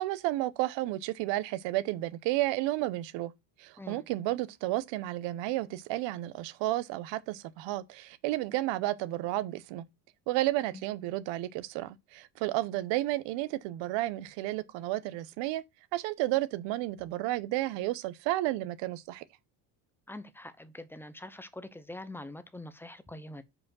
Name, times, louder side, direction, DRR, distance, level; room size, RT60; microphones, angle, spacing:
voice 1, 0.0-3.3 3.6-9.9 10.3-15.6 15.9-19.2, right 16 dB, 80° right, 0.8 m, -32 dB
voice 2, 20.1-23.4, left 1 dB, 5° left, 0.5 m, -44 dB
5.0 x 4.9 x 6.1 m
cardioid pair, 140°, 43 cm